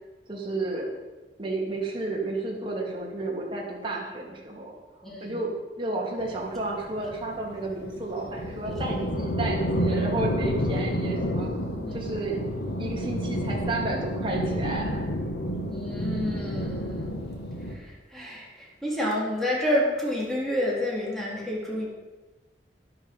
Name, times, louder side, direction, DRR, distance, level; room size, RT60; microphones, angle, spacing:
voice 1, 0.3-0.9 1.4-4.7 5.2-5.5 5.8-11.5 11.9-12.5 12.8-15.1, right 2 dB, 30° right, -2 dB, 2.9 m, -32 dB
voice 2, 5.0-5.5 11.2-11.3 11.8-12.2 15.7-17.2 17.7-21.9, left 1 dB, ahead, -5 dB, 3.6 m, -29 dB
sound 1, 6.2-17.8, equal, 70° left, 1.5 m, -30 dB
11.5 x 11.0 x 5.5 m, 1.2 s
head